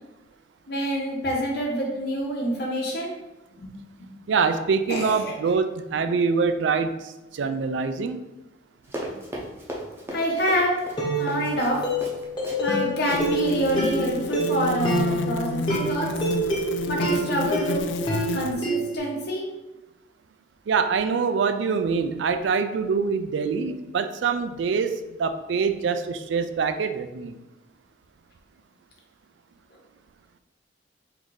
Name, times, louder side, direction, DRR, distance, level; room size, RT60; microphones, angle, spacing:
voice 1, 0.7-3.1 3.6-3.7 4.0-4.1 4.9-5.2 9.0-9.1 10.1-10.7 11.1-11.9 12.6-16.1 16.9-17.8 18.3-19.4, equal, 55° left, -2 dB, 1.2 m, -26 dB
voice 2, 4.3-8.3 20.7-27.4, right 5 dB, 70° right, 10 dB, 0.4 m, -25 dB
Run, 8.9-12.8 13.1-13.2 13.6-13.8, equal, 15° right, 0.6 m, -36 dB
sound 1, 10.1-10.3 11.0-19.0, right 2 dB, 25° left, 1.1 m, -28 dB
sound 2, 11.5-11.6 13.1-18.5, left 4 dB, 75° left, 0.4 m, -30 dB
3.9 x 2.6 x 4.7 m, 1.0 s
head